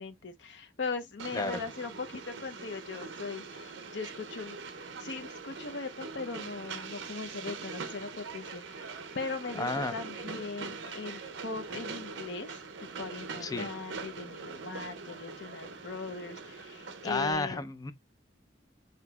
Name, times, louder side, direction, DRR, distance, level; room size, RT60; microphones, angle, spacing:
voice 1, 0.0-4.6 5.0-12.5 13.0-17.7, left 4 dB, 65° left, 0.6 m, -39 dB
Train, 1.2-17.3, right 4 dB, 80° right, 0.6 m, -42 dB
voice 2, 9.6-9.9 13.4-13.7 17.0-17.9, left 2 dB, 20° left, 0.4 m, -32 dB
5.8 x 2.7 x 2.2 m
head